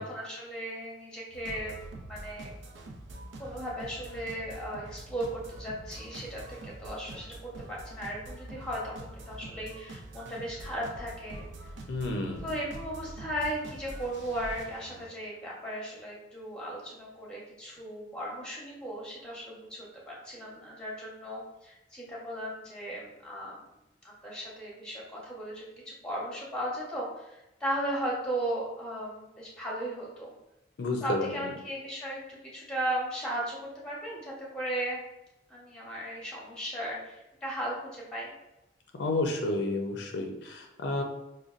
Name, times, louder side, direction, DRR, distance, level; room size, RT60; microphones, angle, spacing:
voice 1, 0.0-1.7 2.1-2.5 3.4-11.4 12.4-23.6 24.0-30.3 31.0-35.0 35.5-38.3, right 1 dB, 5° left, -4 dB, 0.8 m, -36 dB
sound 1, 1.3-15.1, right 1 dB, 85° right, 0.5 m, -45 dB
voice 2, 11.9-12.4 30.8-31.5 39.0-41.0, left 2 dB, 70° left, 2 dB, 0.4 m, -31 dB
5.0 x 2.2 x 2.4 m, 0.91 s
head